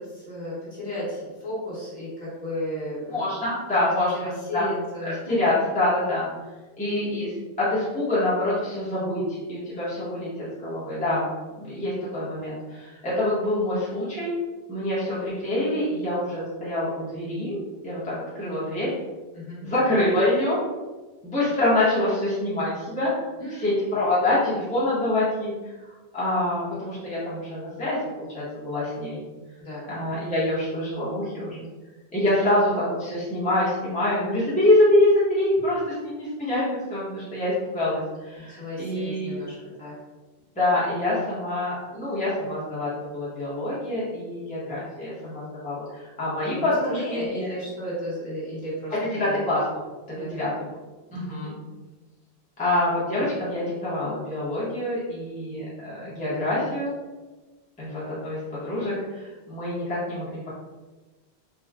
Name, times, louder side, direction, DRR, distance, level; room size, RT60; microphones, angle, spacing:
voice 1, 0.0-3.4 3.7-3.9 4.2-5.4 19.3-19.7 23.4-23.7 29.6-29.8 38.4-39.9 46.5-46.6 46.9-48.9 49.2-49.4 50.1-50.3 51.1-51.4, equal, 45° left, -9 dB, 1.3 m, -34 dB
voice 2, 3.1-4.7 5.1-6.3 6.8-9.2 9.5-11.2 11.6-14.3 14.7-17.6 17.8-19.0 19.6-20.6 21.2-23.1 23.5-25.5 26.1-29.2 29.9-31.6 32.1-39.4 40.6-47.5 49.1-49.6 50.2-50.7 51.1-51.5 52.6-56.9 57.8-60.5, left 1 dB, 10° left, -10 dB, 0.8 m, -25 dB
3.8 x 2.2 x 2.3 m, 1.2 s
omnidirectional pair, 1.1 m